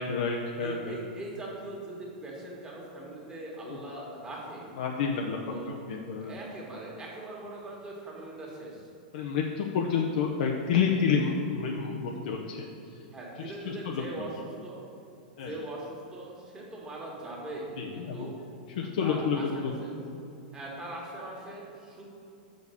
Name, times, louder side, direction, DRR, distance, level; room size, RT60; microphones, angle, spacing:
voice 1, 0.0-1.0 3.7-3.8 4.8-5.4 5.9-6.4 9.1-12.7 13.4-14.0 15.4-15.6 17.8-18.3 18.8-19.7, left 6 dB, 65° left, 0 dB, 0.8 m, -29 dB
voice 2, 0.6-4.7 5.5-5.8 6.2-8.9 13.1-14.8 15.4-18.4 19.0-19.9 20.5-22.0, right 2 dB, 15° right, -4 dB, 1.8 m, -41 dB
6.5 x 5.2 x 6.9 m, 2.6 s
supercardioid pair, 145°, 5 cm